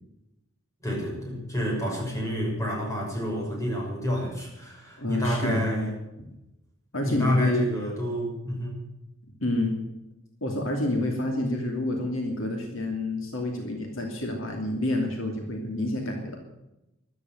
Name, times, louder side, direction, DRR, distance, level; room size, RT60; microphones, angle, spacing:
voice 1, 0.8-5.9 7.0-8.8, equal, 15° left, -2 dB, 6.4 m, -28 dB
voice 2, 5.0-5.6 6.2-6.3 6.9-7.6 9.4-9.8 10.4-16.4, left 1 dB, 65° left, 2 dB, 2.8 m, -28 dB
13.5 x 12.5 x 8.1 m, 0.92 s
head